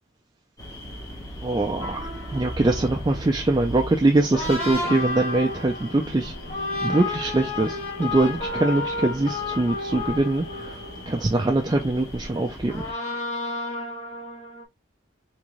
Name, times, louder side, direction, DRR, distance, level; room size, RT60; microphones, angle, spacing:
sound 1, 0.6-12.9, equal, 20° left, 1.1 m, -38 dB
voice 1, 1.4-6.3 6.8-10.8 11.1-12.9, right 2 dB, 20° right, 0.3 m, -23 dB
sound 2, 1.8-12.1 12.6-14.6, left 2 dB, 35° left, 1.3 m, -32 dB
3.6 x 2.6 x 3.1 m
head